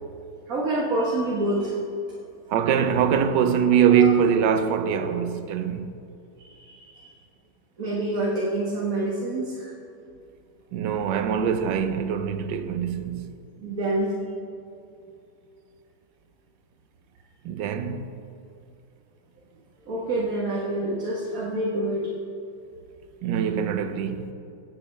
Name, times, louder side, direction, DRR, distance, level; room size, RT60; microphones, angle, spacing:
voice 1, 0.5-1.7 3.9-4.1 6.5-7.1 7.8-9.7 13.6-14.1 19.9-22.1, right 1 dB, 55° right, 1.8 m, -27 dB
voice 2, 2.5-5.9 10.7-13.3 17.4-18.1 23.2-24.3, right 7 dB, 85° right, 1.4 m, -23 dB
18.0 x 8.6 x 3.3 m
omnidirectional pair, 1.9 m